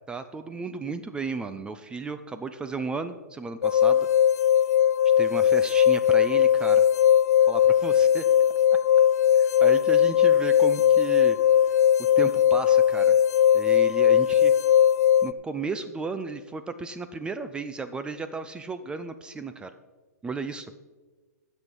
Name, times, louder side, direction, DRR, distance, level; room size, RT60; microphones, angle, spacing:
voice 1, 0.1-4.1 5.2-6.9 7.5-8.3 9.4-11.4 12.2-13.2 13.5-14.5 15.2-19.7 20.2-20.7, right 4 dB, 10° right, 10 dB, 0.5 m, -34 dB
sound 1, 3.6-15.3, left 9 dB, 70° left, 0.4 m, -19 dB
15.5 x 6.3 x 5.4 m, 1.3 s
hypercardioid pair, 125°, 9 cm